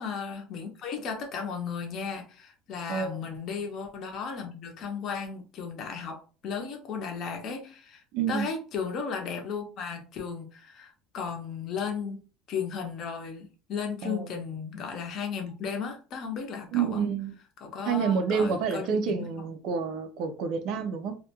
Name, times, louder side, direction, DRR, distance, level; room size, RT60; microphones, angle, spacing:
voice 1, 0.0-8.0 8.3-12.2 12.5-17.1 17.6-19.3, left 6 dB, 40° left, 0.6 m, -35 dB
voice 2, 2.9-3.2 8.1-8.5 14.0-14.5 16.7-17.4 17.8-21.2, right 6 dB, 50° right, 0.4 m, -29 dB
2.3 x 2.1 x 2.8 m
cardioid pair, 170°, 0 cm